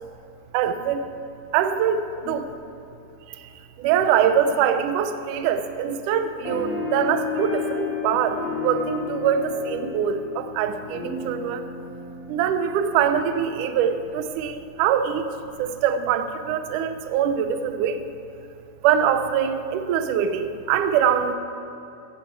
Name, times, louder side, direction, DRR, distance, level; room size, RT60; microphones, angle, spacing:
voice 1, 0.5-1.1 1.5-2.5 3.4-3.5 3.8-11.7 12.3-15.3 15.6-18.1 18.8-21.3, right 8 dB, 75° right, 9 dB, 2.0 m, -23 dB
sound 1, 6.4-13.3, left 5 dB, 65° left, 5.3 m, -32 dB
15.0 x 13.5 x 4.7 m, 2.9 s
omnidirectional pair, 4.1 m